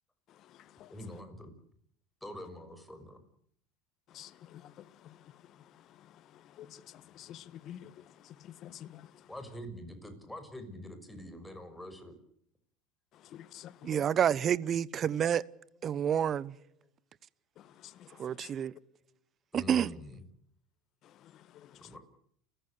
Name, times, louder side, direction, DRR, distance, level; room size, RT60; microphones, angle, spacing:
voice 1, 0.9-1.5 2.2-3.2 9.3-12.2 16.5-16.9 18.7-19.2 19.5-20.2 21.8-22.0, left 1 dB, 5° left, 6.0 m, -45 dB
voice 2, 4.1-4.7 5.0-5.1 6.6-6.8 7.1-7.9 8.4-9.1 13.3-14.0 18.0-18.1 18.4-18.5 21.5-21.7, left 11 dB, 50° left, 1.5 m, -48 dB
voice 3, 13.8-15.4 15.8-16.5 18.2-18.7 19.5-19.9, right 9 dB, 40° right, 0.9 m, -29 dB
30.0 x 15.0 x 8.2 m
supercardioid pair, 100°, 0 cm